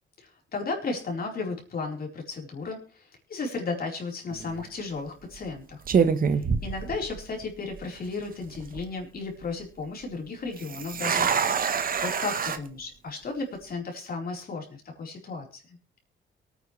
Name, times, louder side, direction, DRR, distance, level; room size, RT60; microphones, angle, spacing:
voice 1, 0.2-5.8 6.3-11.3 11.7-15.8, left 4 dB, 50° left, 1 dB, 4.3 m, -34 dB
sound 1, 4.3-4.6 5.3-5.5 5.9-7.4 7.7-7.8 8.4-8.8 10.6-12.6, right 6 dB, 45° right, 1.3 m, -26 dB
23.0 x 9.3 x 3.3 m, 0.34 s
cardioid pair, 90°, 20 cm